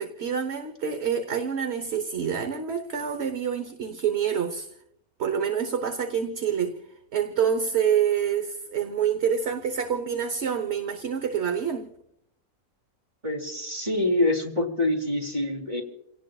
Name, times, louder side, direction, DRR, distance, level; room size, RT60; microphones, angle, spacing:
voice 1, 0.0-4.7 5.2-6.8 7.1-11.9, right 7 dB, 50° right, 1.2 m, -27 dB
voice 2, 13.2-15.8, left 2 dB, 30° right, 3.0 m, -26 dB
29.5 x 17.5 x 2.4 m
omnidirectional pair, 1.6 m